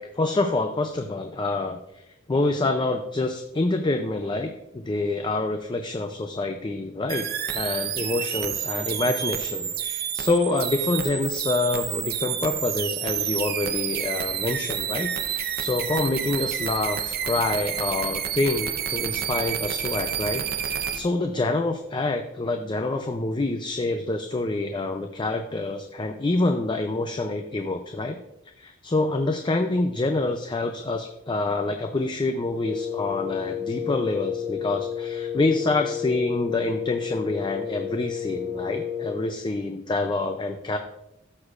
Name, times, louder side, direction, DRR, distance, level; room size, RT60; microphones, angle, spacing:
voice 1, 0.0-7.3 7.5-28.2 28.6-40.8, left 2 dB, 25° left, 6 dB, 0.4 m, -27 dB
sound 1, 7.1-21.0, right 9 dB, 50° right, 0.7 m, -29 dB
Wind instrument woodwind instrument, 32.5-39.3, left 8 dB, 10° left, 2.6 m, -31 dB
14.0 x 6.3 x 2.5 m, 0.88 s
head